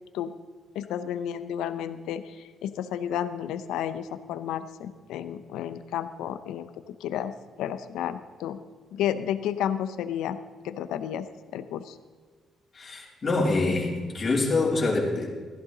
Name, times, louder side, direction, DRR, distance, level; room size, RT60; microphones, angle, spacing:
voice 1, 0.7-7.3 7.6-8.6 8.9-10.4 10.6-11.3 11.5-12.0, left 10 dB, 90° left, 12 dB, 0.6 m, -32 dB
voice 2, 12.7-15.3, left 3 dB, 35° left, -3 dB, 3.2 m, -25 dB
15.0 x 11.5 x 3.9 m, 1.5 s
cardioid pair, 90°, 0 cm